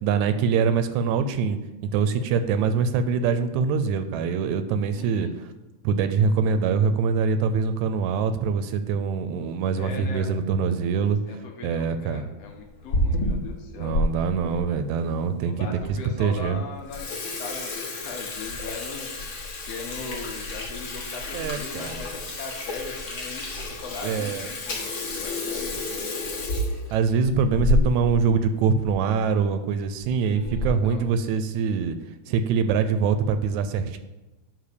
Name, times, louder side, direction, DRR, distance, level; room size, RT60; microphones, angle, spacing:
voice 1, 0.0-5.5 5.8-11.2 11.6-12.3 13.8-16.6 21.3-21.9 24.0-24.5 26.9-31.9 32.3-34.0, right 5 dB, 80° right, 10 dB, 1.8 m, -24 dB
voice 2, 4.9-5.3 9.8-10.3 11.3-14.1 15.4-19.1 19.7-23.4 23.7-26.3 30.2-31.1, left 4 dB, 70° left, 1 dB, 1.8 m, -39 dB
Water tap faucet / Sink (filling or washing), 12.6-14.1 14.5-14.6 15.3-15.4 15.8-15.9 16.3-16.5 16.8-28.2 28.5-28.6 28.9-29.0 29.8-30.1 30.4-30.9, left 1 dB, 50° left, 1.7 m, -29 dB
9.6 x 3.3 x 6.6 m, 1.0 s
omnidirectional pair, 3.4 m